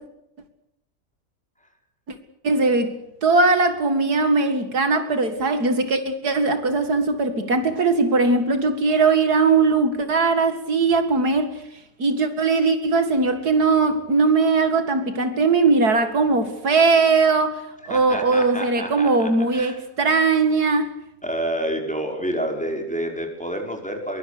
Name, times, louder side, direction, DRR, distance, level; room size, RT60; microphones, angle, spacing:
voice 1, 2.4-11.5 12.0-17.6 17.9-20.9, right 3 dB, 75° right, 2.6 m, -20 dB
voice 2, 17.9-19.8 21.2-24.2, right 1 dB, 5° left, 5.2 m, -28 dB
23.5 x 23.5 x 6.8 m
omnidirectional pair, 1.7 m